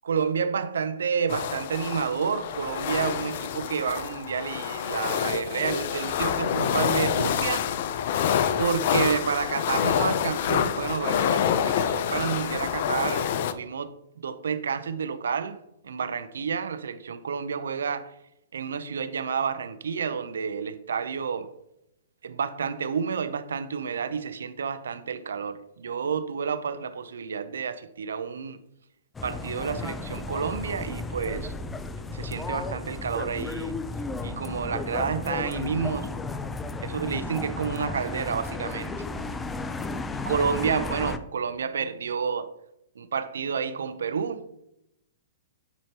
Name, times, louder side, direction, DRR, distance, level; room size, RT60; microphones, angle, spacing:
voice 1, 0.0-7.7 8.6-13.9 14.2-15.6 15.8-18.1 18.5-21.5 22.2-28.6 29.2-31.5 32.1-33.8 34.2-36.1 36.8-38.9 40.3-42.5 43.0-44.5, right 6 dB, 85° right, 0.6 m, -30 dB
sound 1, 1.3-13.5, left 9 dB, 60° left, 0.5 m, -27 dB
sound 2, 29.1-41.2, left 3 dB, 10° left, 0.5 m, -34 dB
9.8 x 4.5 x 2.9 m
hypercardioid pair, 130°, 0 cm